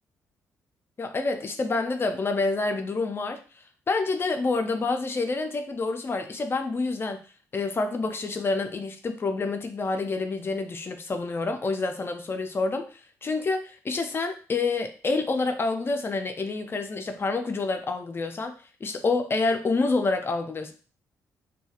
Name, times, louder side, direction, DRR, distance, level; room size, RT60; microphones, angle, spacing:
voice 1, 1.0-3.4 3.9-7.2 7.5-12.9 13.2-18.5 18.8-20.7, left 3 dB, 35° left, 6 dB, 0.5 m, -27 dB
2.3 x 2.3 x 2.8 m, 0.38 s
supercardioid pair, 60°, 7 cm